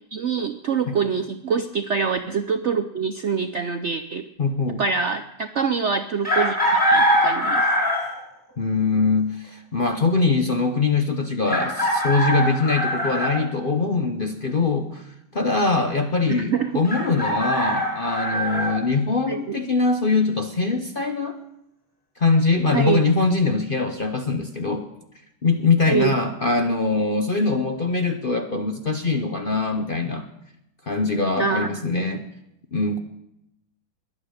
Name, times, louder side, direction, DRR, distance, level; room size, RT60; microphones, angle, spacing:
voice 1, 0.1-4.3 4.8-7.7 16.3-16.8 19.3-19.6 22.7-23.1 25.9-26.1 31.4-31.8, right 5 dB, 60° right, 9 dB, 0.7 m, -25 dB
voice 2, 4.4-4.8 8.6-15.0 15.3-21.4 22.2-24.8 25.4-30.3 30.9-32.2 32.7-33.0, left 3 dB, 45° left, 6 dB, 0.7 m, -22 dB
Chicken rooster, 6.2-8.2 9.9-10.0 11.4-13.4 16.8-18.7, equal, 5° left, 6.9 m, -22 dB
22.0 x 8.7 x 6.6 m, 0.85 s
omnidirectional pair, 2.0 m